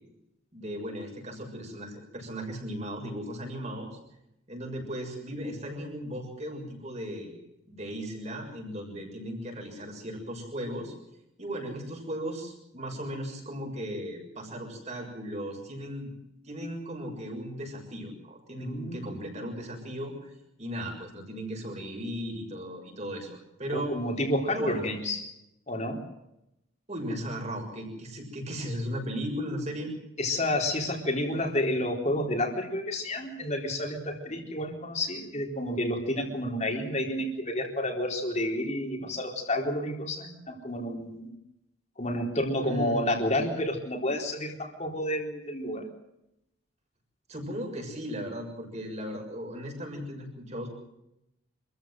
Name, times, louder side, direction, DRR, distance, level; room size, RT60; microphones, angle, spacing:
voice 1, 0.5-4.0 4.5-7.3 7.7-10.9 11.4-16.1 16.4-20.3 20.6-23.9 24.5-25.0 26.9-29.9 42.6-43.1 47.3-50.7, equal, 30° right, 2 dB, 6.8 m, -36 dB
voice 2, 18.6-19.2 23.7-25.2 25.7-26.0 30.2-41.3 42.0-45.9, left 1 dB, 30° left, 2 dB, 4.1 m, -30 dB
27.0 x 15.0 x 7.8 m, 0.86 s
head